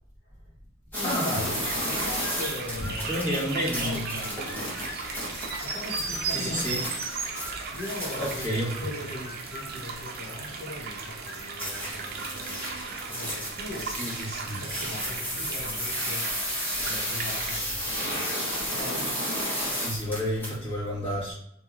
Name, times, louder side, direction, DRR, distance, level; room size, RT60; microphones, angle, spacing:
voice 1, 0.2-0.5 1.0-4.5 5.6-6.8 7.7-13.9 14.6-16.3 16.8-19.1, left 2 dB, 60° left, -5 dB, 0.7 m, -40 dB
sound 1, 0.9-8.5 11.6-20.5, equal, 10° left, 1.0 m, -33 dB
voice 2, 1.0-1.4 3.0-4.1 4.5-4.6 6.3-6.8 8.2-8.7 13.8-14.6 19.6-21.3, equal, 25° left, -8 dB, 1.4 m, -30 dB
sound 2, 1.6-3.5 3.9-5.2 5.4-6.5 7.2-12.8 13.5-13.9 15.1-15.9 16.2-16.3 16.7-16.8 17.4-17.8, left 2 dB, 90° left, 0.6 m, -45 dB
sound 3, 1.6-17.6, right 4 dB, 50° right, 0.5 m, -36 dB
2.8 x 2.7 x 2.5 m, 0.77 s
head